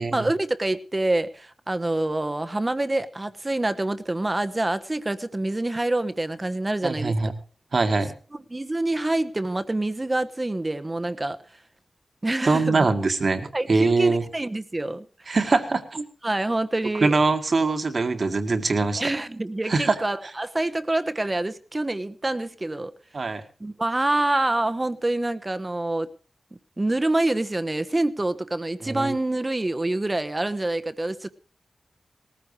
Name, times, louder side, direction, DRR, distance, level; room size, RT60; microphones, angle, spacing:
voice 1, 0.0-7.1 8.5-11.4 12.2-12.9 13.5-15.4 16.2-17.1 19.0-22.9 23.6-26.1 26.8-31.3, right 2 dB, 30° right, 11 dB, 1.2 m, -26 dB
voice 2, 6.8-7.3 7.7-8.1 12.4-14.2 15.3-16.0 17.0-19.0 19.7-20.0 23.1-23.4 28.8-29.2, right 3 dB, 60° right, 7 dB, 2.0 m, -23 dB
18.5 x 14.5 x 3.3 m, 0.38 s
cardioid pair, 45°, 0 cm